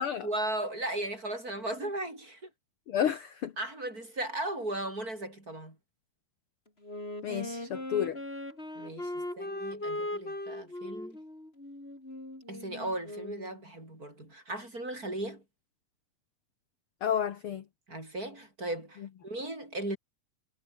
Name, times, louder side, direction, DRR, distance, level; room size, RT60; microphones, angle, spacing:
voice 1, 0.2-2.5 3.6-5.8 8.8-11.2 12.5-15.4 17.9-20.0, right 1 dB, 25° right, 8.5 m, -36 dB
voice 2, 2.9-3.5 7.2-8.2 17.0-17.6, left 9 dB, 60° left, 1.5 m, -31 dB
Wind instrument woodwind instrument, 6.8-13.5, left 1 dB, 15° left, 6.9 m, -39 dB
omnidirectional pair, 4.1 m